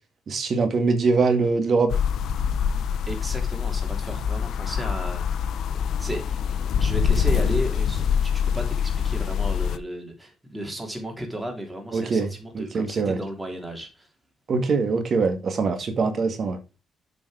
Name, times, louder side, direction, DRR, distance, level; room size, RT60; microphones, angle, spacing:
voice 1, 0.3-2.0 11.9-13.2 14.5-16.6, right 4 dB, 50° right, 2.0 m, -23 dB
sound 1, 1.9-9.8, left 7 dB, 70° left, 0.7 m, -25 dB
voice 2, 3.1-5.4 5.7-6.4 6.8-14.1, right 1 dB, 10° right, 3.2 m, -34 dB
8.0 x 5.3 x 4.9 m
cardioid pair, 90°, 0 cm